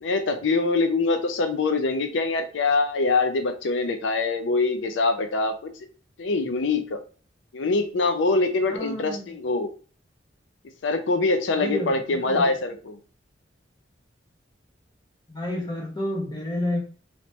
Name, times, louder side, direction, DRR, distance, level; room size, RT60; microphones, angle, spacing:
voice 1, 0.0-5.7 6.2-7.0 7.5-9.7 10.8-13.0, left 3 dB, 80° left, 0.5 m, -24 dB
voice 2, 8.7-9.3 11.6-12.5 15.3-16.8, left 1 dB, 20° left, 1.0 m, -30 dB
3.2 x 3.0 x 2.8 m
head